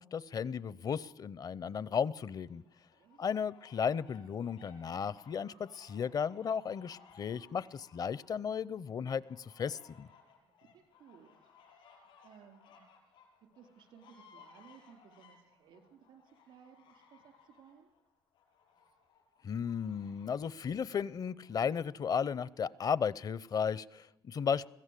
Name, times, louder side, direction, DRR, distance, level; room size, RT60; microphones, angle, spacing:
voice 1, 0.0-2.6 3.2-10.1 19.4-24.7, left 7 dB, 50° left, 21 dB, 0.7 m, -35 dB
sound 1, 2.0-21.6, left 5 dB, 90° left, 6.0 m, -62 dB
voice 2, 2.9-3.3 10.4-11.4 11.6-17.9, right 7 dB, 85° right, 6 dB, 4.0 m, -60 dB
22.5 x 15.5 x 8.4 m, 0.91 s
cardioid pair, 75°, 8 cm